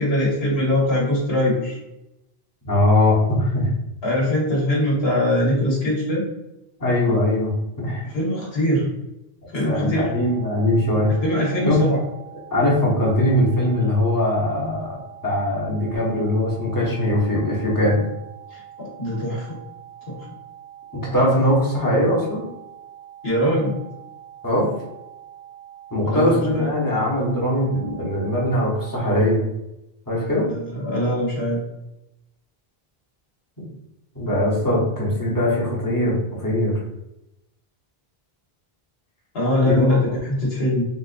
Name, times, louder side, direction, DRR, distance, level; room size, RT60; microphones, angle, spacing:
voice 1, 0.0-1.8 4.0-6.2 8.1-8.9 9.5-10.1 11.2-12.0 18.5-19.6 20.1-20.2 23.2-23.7 26.1-26.7 30.5-31.6 39.3-40.9, left 1 dB, 80° left, -4 dB, 1.2 m, -22 dB
voice 2, 2.6-3.7 6.8-8.0 9.6-11.1 11.7-11.8 12.5-18.0 21.1-22.4 24.4-24.7 25.9-29.4 30.1-30.5 33.6-33.7 34.1-36.7 39.7-40.0, left 1 dB, 20° left, -5 dB, 0.9 m, -21 dB
sound 1, 10.0-29.0, right 10 dB, 50° left, 1.3 m, -44 dB
3.8 x 2.4 x 2.5 m, 0.89 s
omnidirectional pair, 1.0 m